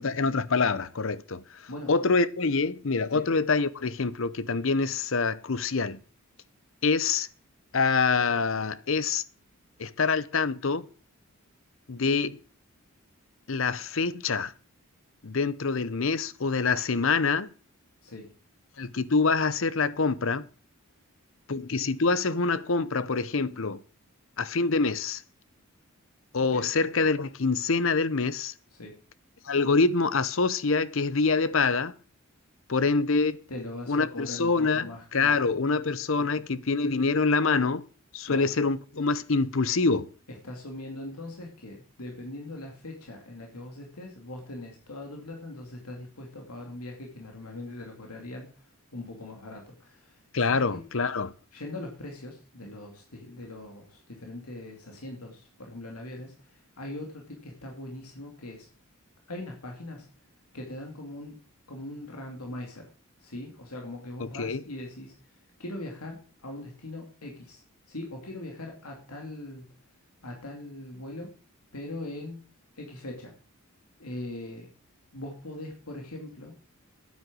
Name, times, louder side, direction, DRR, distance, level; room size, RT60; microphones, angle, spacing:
voice 1, 0.0-1.4 1.9-6.0 6.8-7.3 7.7-9.2 9.8-10.9 11.9-12.4 13.5-14.5 15.2-17.5 18.8-20.5 21.5-23.8 24.4-25.2 26.3-28.5 29.4-31.9 32.7-33.4 33.9-34.8 35.1-37.8 38.1-40.1 50.3-51.3 64.2-64.6, left 4 dB, 60° left, 0.7 m, -25 dB
voice 2, 26.4-26.7 28.7-29.0 33.5-35.4 36.2-36.4 38.3-38.5 40.3-50.8 51.5-58.7 59.3-60.1 60.5-61.4 61.7-62.9 63.2-67.6 67.9-69.6 70.2-71.3 71.7-72.4 72.7-73.3 74.0-74.7 75.1-76.5, left 1 dB, 90° left, 2.7 m, -41 dB
9.5 x 8.9 x 6.2 m
head